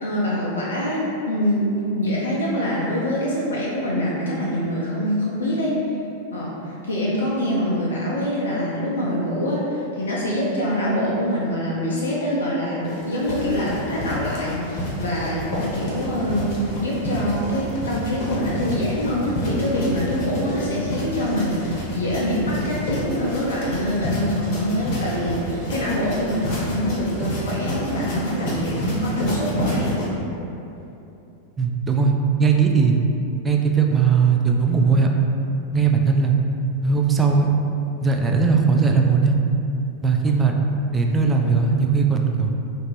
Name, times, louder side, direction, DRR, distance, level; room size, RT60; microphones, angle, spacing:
voice 1, 0.0-5.7 6.3-29.9, equal, 70° left, -5 dB, 0.5 m, -25 dB
sound 1, 12.8-30.1, left 1 dB, 45° left, 0.9 m, -29 dB
voice 2, 31.6-32.1 32.4-33.0 33.4-35.1 35.7-36.3 36.8-37.5 38.0-39.4 40.0-40.6 40.9-42.5, right 5 dB, 15° right, 2 dB, 0.3 m, -18 dB
2.6 x 2.5 x 3.7 m, 2.8 s
figure-of-eight pair, 90°, 0 cm